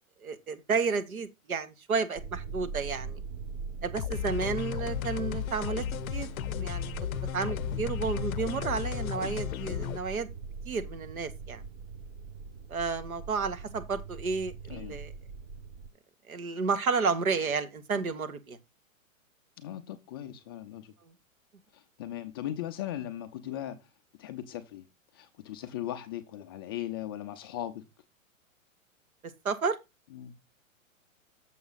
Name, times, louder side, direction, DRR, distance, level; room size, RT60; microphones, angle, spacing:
voice 1, 0.2-3.2 3.8-5.8 6.1-6.3 6.6-10.3 10.7-11.6 12.7-15.1 16.3-18.6 29.5-29.8, right 5 dB, 90° right, 1.7 m, -31 dB
sound 1, 2.1-15.9, right 5 dB, 45° right, 0.9 m, -41 dB
sound 2, 4.0-10.0, left 11 dB, 85° left, 0.5 m, -34 dB
voice 2, 14.7-15.0 19.6-20.9 21.7-23.8 24.2-24.8 25.1-27.8 30.1-30.3, left 12 dB, 20° left, 0.3 m, -38 dB
7.1 x 6.2 x 3.9 m
hypercardioid pair, 130°, 41 cm